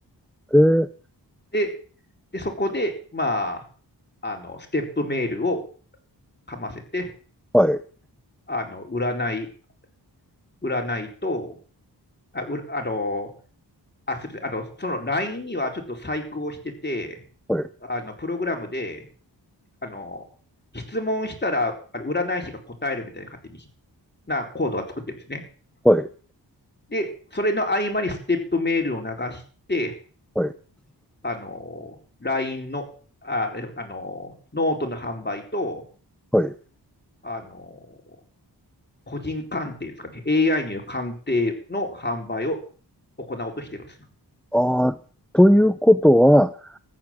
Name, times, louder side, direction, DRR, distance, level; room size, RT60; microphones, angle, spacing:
voice 1, 0.5-0.9 7.5-7.8 17.5-17.7 25.8-26.1 30.4-30.5 36.3-36.5 44.5-45.0 45.3-46.8, equal, ahead, 12 dB, 0.6 m, -17 dB
voice 2, 2.3-3.6 4.2-5.6 6.5-7.1 8.5-9.5 10.6-11.6 12.3-13.3 14.1-17.2 17.8-19.1 19.8-20.2 20.7-23.6 24.3-25.4 26.9-29.4 29.7-29.9 31.2-32.9 33.2-35.8 37.2-38.0 39.1-42.6 43.2-43.9, left 2 dB, 25° left, 2 dB, 4.2 m, -28 dB
14.5 x 10.5 x 7.5 m, 0.42 s
wide cardioid pair, 100°, 41 cm